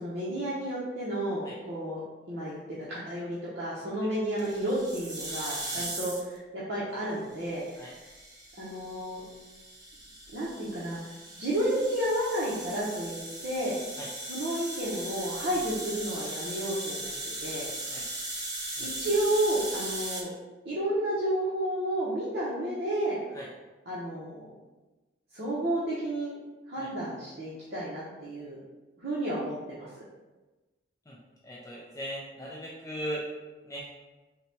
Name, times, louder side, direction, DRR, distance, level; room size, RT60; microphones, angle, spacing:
voice 1, 0.0-2.0 2.3-8.1 8.6-9.2 10.3-11.0 11.4-13.8 14.3-17.1 17.4-17.7 18.8-20.3 20.6-23.2 23.9-24.5 25.3-26.3 26.7-28.6 29.0-29.9, right 1 dB, 60° right, -8 dB, 0.8 m, -31 dB
sound 1, 4.4-6.4 7.4-20.2, right 2 dB, 20° right, 0.7 m, -38 dB
voice 2, 31.4-33.3 33.6-33.9, equal, 15° left, -4 dB, 0.4 m, -38 dB
3.8 x 2.2 x 4.3 m, 1.2 s
head